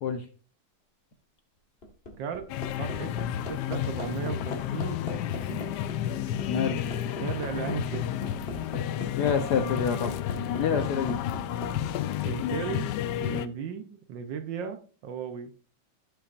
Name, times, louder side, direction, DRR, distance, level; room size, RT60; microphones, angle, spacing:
Hammer, 1.6-11.7 13.0-13.1, left 1 dB, 30° left, 1.6 m, -39 dB
voice 1, 2.2-2.5 2.8-3.2 3.5-5.7 7.2-8.7 10.7-10.8 11.4-15.5, right 7 dB, 65° right, 8 dB, 1.3 m, -37 dB
sound 1, 2.5-13.5, left 11 dB, 90° left, 0.9 m, -31 dB
voice 2, 6.5-6.8 9.2-10.1 10.6-11.1, left 6 dB, 65° left, 7 dB, 1.0 m, -27 dB
15.5 x 5.7 x 2.5 m, 0.39 s
omnidirectional pair, 2.4 m